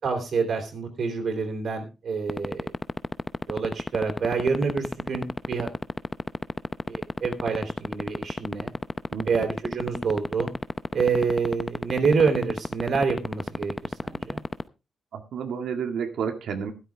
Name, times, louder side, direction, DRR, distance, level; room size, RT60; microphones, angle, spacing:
voice 1, 0.0-2.7 3.5-5.7 6.9-8.7 9.2-10.5 10.9-14.4, right 5 dB, 55° right, 4 dB, 3.3 m, -27 dB
sound 1, 2.3-14.6, left 2 dB, 20° left, 0.6 m, -27 dB
voice 2, 15.1-16.7, right 7 dB, 85° right, 4 dB, 2.0 m, -30 dB
13.0 x 12.5 x 3.5 m, 0.29 s
wide cardioid pair, 165°, 0 cm